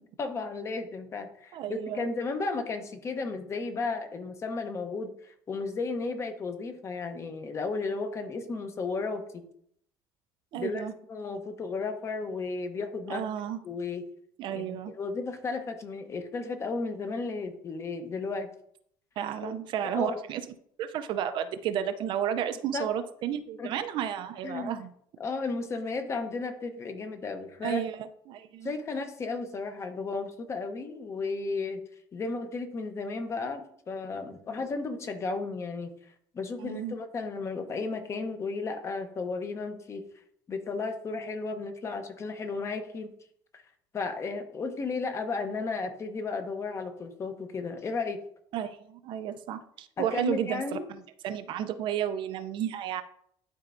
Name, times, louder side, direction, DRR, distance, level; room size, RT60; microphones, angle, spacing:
voice 1, 0.2-9.4 10.5-10.8 11.1-13.3 13.6-14.0 14.5-18.5 19.4-19.5 19.9-20.2 22.7-22.9 23.6-23.7 24.4-24.7 25.2-27.8 28.6-31.8 32.1-35.9 36.3-40.0 40.5-43.1 43.5-43.6 43.9-48.2 50.0-50.9, left 4 dB, 30° left, 7 dB, 0.9 m, -34 dB
voice 2, 1.5-2.1 10.5-10.9 13.1-13.6 14.4-14.9 19.2-20.4 20.8-24.9 27.6-28.7 36.6-36.9 48.5-50.8 51.2-53.0, right 9 dB, 55° right, 10 dB, 0.5 m, -32 dB
11.5 x 4.5 x 2.6 m, 0.67 s
cardioid pair, 145°, 10 cm